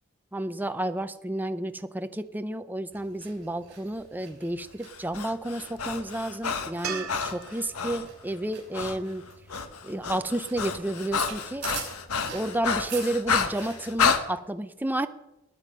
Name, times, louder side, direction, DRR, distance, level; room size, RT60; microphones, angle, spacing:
voice 1, 0.3-9.2 9.8-11.7 12.3-15.1, right 1 dB, 10° right, 10 dB, 0.5 m, -31 dB
sound 1, 2.9-14.0, right 6 dB, 55° right, 5.5 m, -46 dB
Breathing, 4.9-8.1 8.7-9.0 9.3-14.2, left 6 dB, 85° left, 1.2 m, -30 dB
sound 2, 6.8-10.1 13.3-13.4, right 7 dB, 70° right, 2.1 m, -41 dB
20.0 x 9.2 x 5.4 m, 0.95 s
head